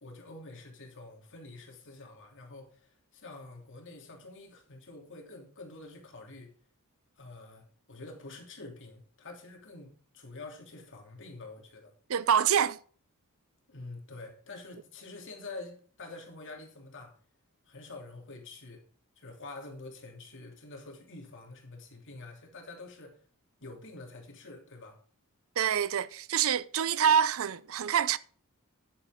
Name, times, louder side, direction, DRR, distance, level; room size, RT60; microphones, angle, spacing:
voice 1, 0.0-6.5 7.2-11.9 13.7-17.2 17.6-18.8 19.1-23.2 23.6-25.0, left 2 dB, 60° left, 3.1 m, -47 dB
voice 2, 12.1-12.8 25.6-28.2, right 8 dB, 65° right, 0.5 m, -26 dB
10.5 x 8.9 x 3.7 m
head